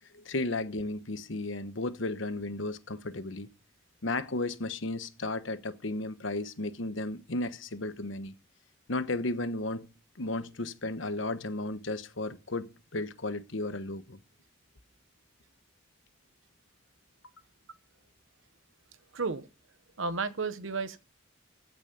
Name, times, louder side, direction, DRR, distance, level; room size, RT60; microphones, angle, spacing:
voice 1, 0.1-3.5 4.0-8.3 8.9-9.9 10.2-14.2, left 2 dB, 70° left, 1.1 m, -34 dB
voice 2, 19.1-19.5 20.0-21.0, right 4 dB, 75° right, 1.0 m, -32 dB
15.5 x 6.2 x 5.3 m
head